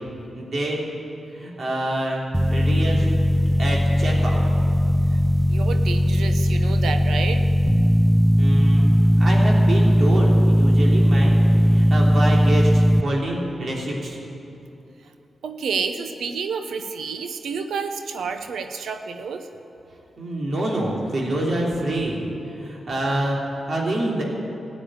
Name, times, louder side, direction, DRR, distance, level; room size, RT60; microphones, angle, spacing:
voice 1, 0.3-0.8 1.3-3.1 3.6-4.4 8.4-8.9 9.2-14.2 20.2-23.4 23.6-24.2, right 1 dB, 60° right, -2 dB, 3.3 m, -26 dB
sound 1, 2.3-13.0, equal, 5° right, 0.6 m, -18 dB
voice 2, 5.5-7.4 15.4-19.5, right 5 dB, 85° right, 8 dB, 1.0 m, -29 dB
13.5 x 9.5 x 8.8 m, 3.0 s
cardioid pair, 60°, 0 cm